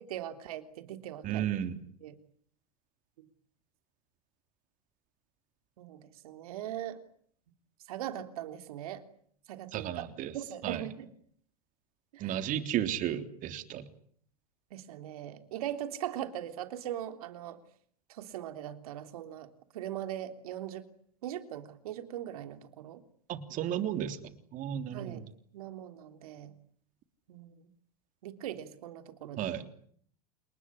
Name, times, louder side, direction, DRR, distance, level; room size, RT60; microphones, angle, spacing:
voice 1, 0.0-1.5 2.0-2.2 3.2-3.3 5.8-7.0 7.9-9.0 9.5-10.1 10.3-11.1 12.1-12.5 14.7-17.6 18.1-20.9 21.2-23.0 24.9-25.3 25.5-26.5 27.3-27.7 28.2-29.5, right 11 dB, 70° right, 9 dB, 3.4 m, -40 dB
voice 2, 1.2-1.8 9.7-10.3 10.6-10.8 12.2-13.9 23.3-25.2 29.4-29.6, right 10 dB, 45° right, 9 dB, 3.4 m, -33 dB
29.5 x 19.5 x 9.9 m, 0.62 s
hypercardioid pair, 100°, 19 cm